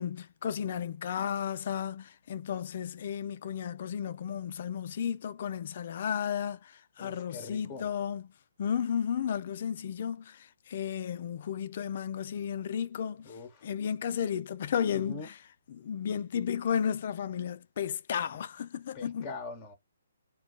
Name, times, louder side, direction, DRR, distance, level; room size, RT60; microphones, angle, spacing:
voice 1, 0.0-8.3 8.6-13.4 13.6-15.4 15.7-19.3, left 8 dB, 50° left, 0.4 m, -33 dB
voice 2, 7.0-7.9 13.2-13.7 14.9-15.3 18.9-19.7, left 3 dB, 20° left, 0.9 m, -42 dB
2.3 x 2.3 x 3.7 m
figure-of-eight pair, 140°, 0 cm